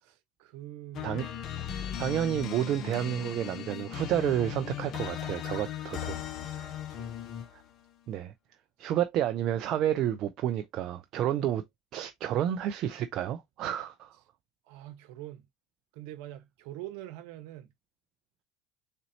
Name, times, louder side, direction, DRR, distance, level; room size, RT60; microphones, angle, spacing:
voice 1, 0.0-1.2 6.5-6.6 6.9-7.2 14.6-15.5 15.9-17.7, right 14 dB, 70° right, 1.1 m, -44 dB
sound 1, 0.9-7.7, left 10 dB, 50° left, 0.8 m, -37 dB
voice 2, 2.0-6.7 8.1-8.3 8.8-11.6 11.9-14.2, right 11 dB, 55° right, 0.5 m, -30 dB
4.3 x 4.0 x 2.8 m
hypercardioid pair, 85°, 0 cm